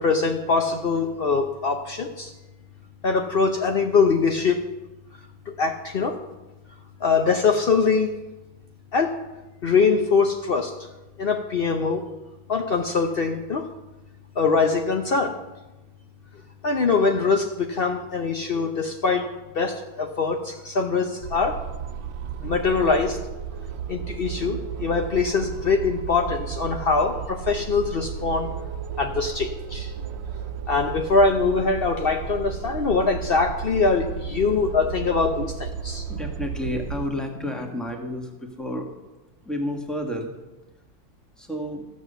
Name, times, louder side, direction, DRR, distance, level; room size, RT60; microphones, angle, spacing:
voice 1, 0.0-2.3 3.0-4.6 5.5-6.2 7.0-8.2 8.9-9.1 9.6-10.7 11.2-12.1 12.5-13.7 14.4-15.4 16.6-21.6 22.4-23.2 23.9-28.5 29.0-29.9 30.7-36.0, left 4 dB, 75° left, 4 dB, 0.5 m, -23 dB
sound 1, 21.2-37.1, right 8 dB, 70° right, 1.3 m, -34 dB
voice 2, 35.9-38.9 39.4-40.3 41.4-41.9, left 1 dB, ahead, 2 dB, 1.3 m, -31 dB
14.0 x 7.6 x 6.8 m, 1.1 s
omnidirectional pair, 2.1 m